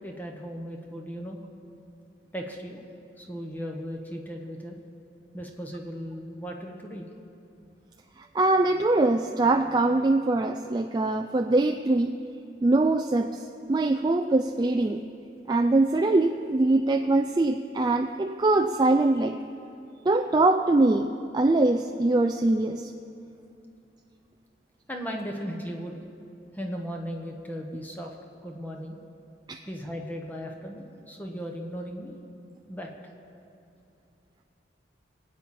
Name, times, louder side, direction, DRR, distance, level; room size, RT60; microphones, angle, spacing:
voice 1, 0.0-1.4 2.3-2.8 3.2-4.8 5.3-7.1 24.9-26.0 26.5-28.2 28.4-29.0 29.7-32.2 32.7-33.1, equal, 10° left, 1 dB, 1.0 m, -37 dB
voice 2, 8.2-12.2 12.6-15.0 15.5-19.4 20.1-22.9 29.5-29.6, right 2 dB, 25° right, 5 dB, 0.3 m, -23 dB
23.5 x 8.5 x 4.3 m, 2.7 s
head